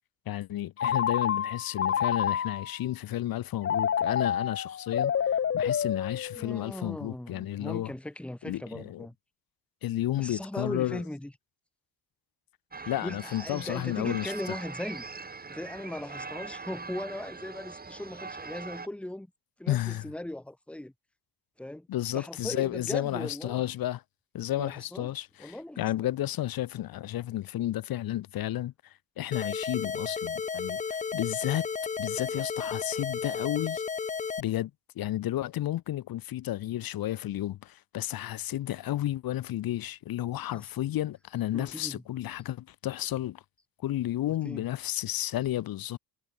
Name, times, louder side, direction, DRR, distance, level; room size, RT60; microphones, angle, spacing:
voice 1, 0.3-7.9 8.5-9.1 9.8-11.0 12.9-14.6 19.7-20.1 21.9-24.0 24.3-31.7 32.0-33.8 34.4-43.4 43.8-46.0, left 13 dB, 70° left, 1.2 m, -32 dB
Telephone, 0.8-2.8 3.6-6.7, left 8 dB, 40° left, 0.9 m, -28 dB
voice 2, 6.4-9.1 10.2-11.3 12.8-15.1 15.5-19.3 19.6-20.9 21.6-21.9 22.1-23.6 24.6-25.1 25.4-25.9 40.5-40.6 41.5-42.0 44.4-44.7, left 1 dB, 5° left, 1.4 m, -38 dB
sound 1, 12.7-18.9, right 4 dB, 25° right, 3.6 m, -42 dB
sound 2, 29.3-34.4, left 5 dB, 20° left, 0.6 m, -33 dB
cardioid pair, 115°, 36 cm